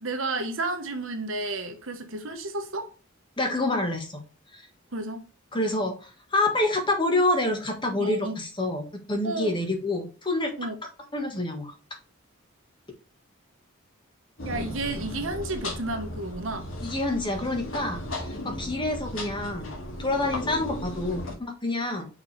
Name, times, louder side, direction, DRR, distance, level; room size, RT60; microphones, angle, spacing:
voice 1, 0.0-2.9 4.9-5.3 8.0-8.3 9.2-9.6 10.6-10.7 14.4-16.7, right 2 dB, 75° right, 1.3 m, -32 dB
voice 2, 3.4-4.2 4.5-4.6 5.5-10.5 11.1-11.7 16.8-19.7 20.0-22.1, left 2 dB, 25° left, 1.5 m, -27 dB
sound 1, 14.4-21.3, left 1 dB, 70° left, 2.3 m, -36 dB
5.9 x 4.7 x 3.3 m
head